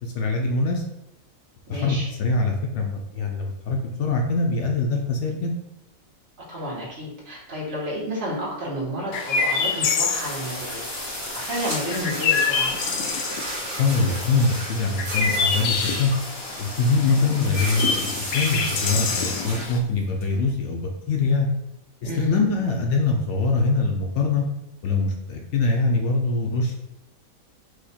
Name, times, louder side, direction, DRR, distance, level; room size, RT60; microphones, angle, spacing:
voice 1, 0.0-0.8 1.7-5.5 13.8-16.1 16.6-18.0 18.3-21.5 22.0-24.4 24.8-26.8, left 3 dB, 65° left, 2 dB, 0.8 m, -23 dB
voice 2, 1.7-2.1 6.5-10.8 11.3-12.7 22.0-22.4, left 1 dB, 55° right, -4 dB, 1.6 m, -30 dB
Chirp tweet, 9.1-19.8, left 5 dB, 85° left, 1.0 m, -27 dB
sound 1, 10.1-20.5, right 1 dB, 70° right, 1.7 m, -34 dB
4.9 x 2.2 x 4.1 m, 0.91 s
omnidirectional pair, 1.5 m